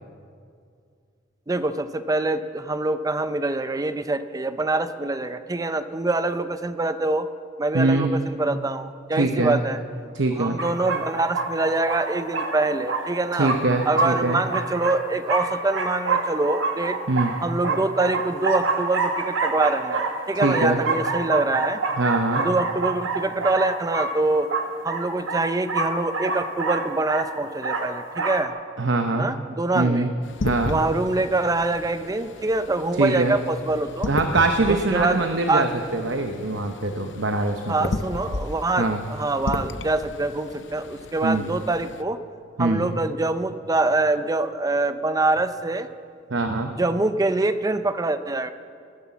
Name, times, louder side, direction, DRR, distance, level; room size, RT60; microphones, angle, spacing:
voice 1, 1.5-7.3 7.6-9.8 10.4-13.5 13.9-17.0 17.4-21.8 22.4-24.5 24.8-28.5 29.2-30.1 30.7-34.1 34.7-35.7 37.7-42.2 42.6-45.9 46.8-48.5, right 2 dB, 20° right, 11 dB, 0.5 m, -25 dB
voice 2, 7.7-8.1 9.1-9.6 10.1-10.6 13.4-14.4 17.1-17.3 20.4-20.8 22.0-22.4 28.8-29.3 29.7-30.1 30.4-30.8 33.0-33.4 34.1-37.9 38.8-39.0 41.2-41.5 42.6-42.8 46.3-46.7, right 2 dB, 65° right, 6 dB, 0.9 m, -23 dB
sound 1, 10.6-28.5, right 3 dB, 90° right, 1.5 m, -27 dB
sound 2, 30.2-42.0, left 2 dB, 65° left, 0.6 m, -35 dB
19.0 x 9.8 x 7.2 m, 2.3 s
head